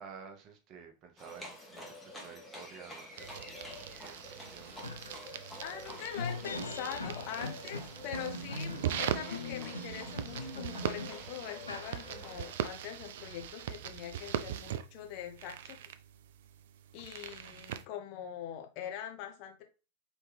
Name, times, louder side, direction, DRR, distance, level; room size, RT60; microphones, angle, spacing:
voice 1, 0.0-5.0, right 6 dB, 35° right, 4 dB, 0.9 m, -52 dB
Livestock farm animals working animals, 1.2-12.5, left 1 dB, 15° left, 1.3 m, -49 dB
sound 1, 3.2-17.8, right 10 dB, 55° right, 0.3 m, -41 dB
sound 2, 4.0-4.1 4.5-12.5, left 2 dB, 80° left, 0.6 m, -42 dB
voice 2, 5.6-15.8 16.9-19.6, left 10 dB, 40° left, 3 dB, 0.9 m, -43 dB
4.1 x 3.4 x 3.3 m, 0.33 s
figure-of-eight pair, 90°, 0 cm